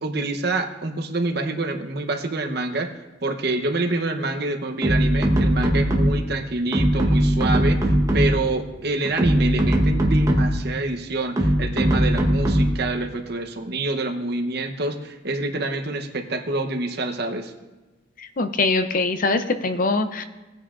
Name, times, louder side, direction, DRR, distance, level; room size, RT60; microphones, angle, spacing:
voice 1, 0.0-2.9 3.2-17.5, right 2 dB, 55° right, 5 dB, 0.9 m, -27 dB
sound 1, 4.8-6.3 6.7-8.5 9.0-10.7 11.4-12.9, equal, 15° right, 1.1 m, -20 dB
voice 2, 18.2-20.2, left 3 dB, 45° left, 9 dB, 0.6 m, -23 dB
17.0 x 9.3 x 2.5 m, 1.2 s
head